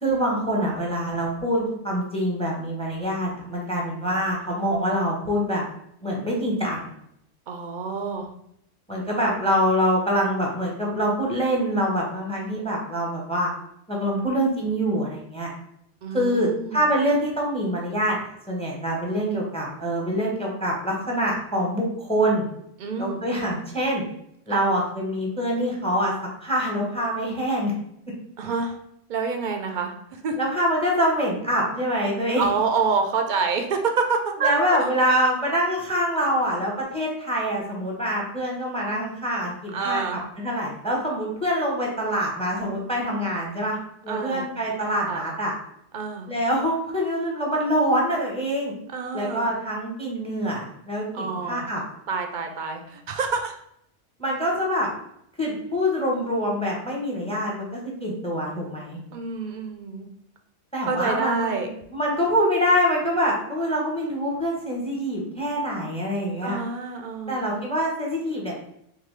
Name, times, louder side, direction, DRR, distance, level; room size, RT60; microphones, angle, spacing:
voice 1, 0.0-5.6 6.0-6.9 8.9-13.5 13.9-15.5 16.1-22.5 23.0-24.0 24.5-26.1 26.4-27.7 30.4-32.4 34.4-40.0 40.4-43.8 44.0-45.5 46.3-48.7 49.1-51.8 54.2-54.9 55.4-59.0 60.7-66.6 67.3-68.5, equal, 5° left, -2 dB, 0.7 m, -25 dB
voice 2, 7.5-8.3 16.0-16.8 22.8-23.2 28.4-28.8 29.1-30.4 32.4-34.5 39.7-40.2 44.1-44.5 45.1-45.2 45.9-46.3 48.9-49.5 51.1-51.7 52.1-53.6 59.1-60.1 60.8-61.7 66.4-67.4, right 5 dB, 55° right, 4 dB, 0.6 m, -27 dB
3.7 x 3.0 x 3.1 m, 0.73 s
omnidirectional pair, 1.2 m